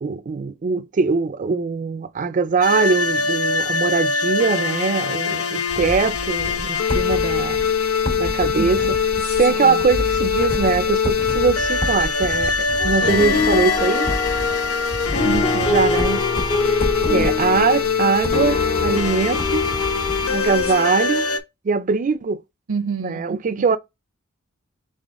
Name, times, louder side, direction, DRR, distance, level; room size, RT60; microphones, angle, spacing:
voice 1, 0.0-7.6 8.2-8.8 9.4-12.6 12.8-14.1 15.7-16.2 17.1-19.6 20.3-21.3 21.6-22.4 23.0-23.8, right 5 dB, 40° right, 0.4 m, -21 dB
sound 1, 2.6-21.4, left 5 dB, 80° left, 0.7 m, -23 dB
sound 2, 5.7-20.7, left 1 dB, 50° left, 1.9 m, -31 dB
voice 2, 8.6-9.2 9.5-9.8 15.2-15.8 17.1-17.3 22.7-23.6, right 5 dB, 80° right, 0.6 m, -29 dB
sound 3, 12.8-21.4, left 3 dB, 30° left, 0.6 m, -25 dB
3.9 x 3.7 x 3.6 m
head